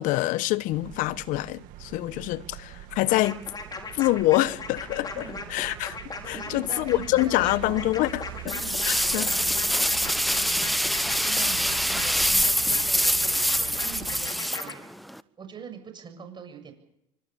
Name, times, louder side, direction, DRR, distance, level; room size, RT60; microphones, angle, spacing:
voice 1, 0.0-3.4 3.9-5.2 5.5-6.0 6.2-8.5 8.9-9.3, left 17 dB, 65° left, 1.1 m, -26 dB
sound 1, 0.7-14.3, right 14 dB, 65° right, 2.3 m, -42 dB
sound 2, 3.1-14.7, left 3 dB, 25° left, 5.6 m, -39 dB
voice 2, 5.1-5.5 6.3-8.0 8.5-14.8 15.4-16.7, right 6 dB, 30° right, 7.3 m, -44 dB
sound 3, 8.5-15.2, equal, ahead, 1.0 m, -25 dB
24.5 x 21.0 x 7.0 m
hypercardioid pair, 85°, 15 cm